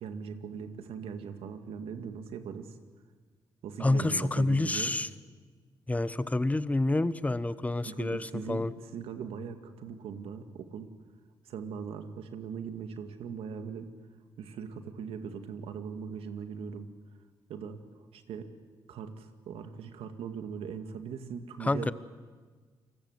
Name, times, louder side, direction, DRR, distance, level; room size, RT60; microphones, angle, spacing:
voice 1, 0.0-2.8 3.6-4.9 7.8-10.9 11.4-13.9 14.4-16.9 17.5-17.8 18.1-18.5 18.9-21.9, right 6 dB, 80° right, 7 dB, 2.1 m, -40 dB
voice 2, 3.8-5.1 5.9-8.7 21.6-21.9, left 2 dB, 15° left, 15 dB, 1.0 m, -28 dB
29.0 x 20.5 x 8.1 m, 1.5 s
cardioid pair, 80°, 10 cm